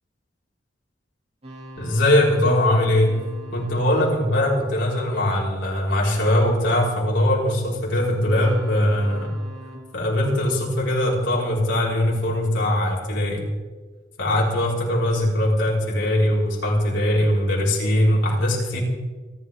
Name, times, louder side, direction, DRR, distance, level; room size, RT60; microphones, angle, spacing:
sound 1, 1.4-5.8 8.2-11.5, equal, 35° right, 2.9 m, -43 dB
voice 1, 1.8-3.2 3.5-9.3 9.9-13.5 14.2-18.8, left 1 dB, 70° left, -4 dB, 5.3 m, -21 dB
29.5 x 12.5 x 3.8 m, 1.3 s
head